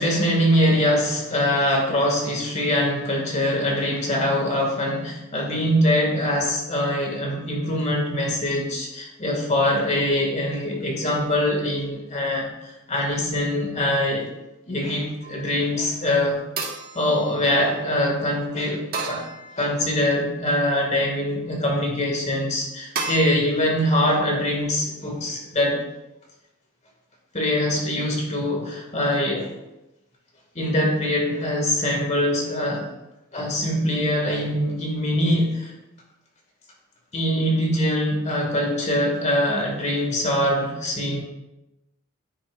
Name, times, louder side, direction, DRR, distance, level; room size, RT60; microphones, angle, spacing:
voice 1, 0.0-14.3 14.7-16.4 16.9-19.2 19.6-25.8 27.3-29.5 30.5-32.9 33.3-35.7 37.1-41.2, left 1 dB, 35° left, 0 dB, 2.2 m, -23 dB
sound 1, 15.2-15.7 16.6-17.9 18.9-20.0 20.6-21.2 23.0-23.2, right 4 dB, 45° right, 1.7 m, -33 dB
10.0 x 9.9 x 2.6 m, 0.94 s
head